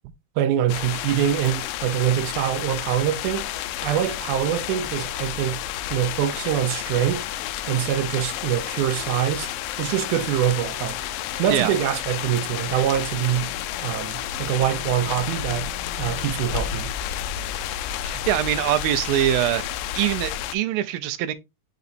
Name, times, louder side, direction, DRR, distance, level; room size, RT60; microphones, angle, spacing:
voice 1, 0.4-3.5 3.8-5.6 5.9-7.3 7.7-9.5 9.8-11.0 11.4-13.5 13.8-15.7 16.0-16.9, right 11 dB, 75° right, 2.1 m, -24 dB
sound 1, 0.7-20.6, left 11 dB, 80° left, 2.1 m, -31 dB
sound 2, 8.0-16.8, left 8 dB, 60° left, 1.7 m, -45 dB
voice 2, 18.0-19.7 20.0-21.3, right 12 dB, 90° right, 2.5 m, -23 dB
6.7 x 5.5 x 2.6 m
omnidirectional pair, 4.0 m